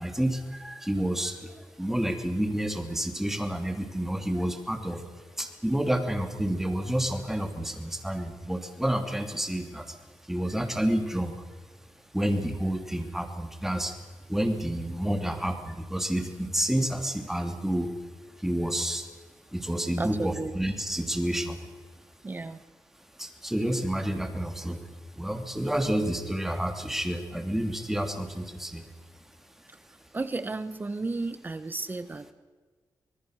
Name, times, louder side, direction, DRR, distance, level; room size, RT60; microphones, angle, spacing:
voice 1, 0.0-5.0 5.4-10.0 10.2-11.3 12.1-14.0 14.3-17.9 18.4-19.1 19.5-21.6 23.2-24.8 25.1-28.9, right 1 dB, 5° right, 5 dB, 2.9 m, -29 dB
voice 2, 20.0-20.5 22.2-22.6 30.1-32.3, right 3 dB, 25° right, 12 dB, 1.3 m, -33 dB
25.5 x 20.0 x 6.6 m, 1.5 s
wide cardioid pair, 130°, 8 cm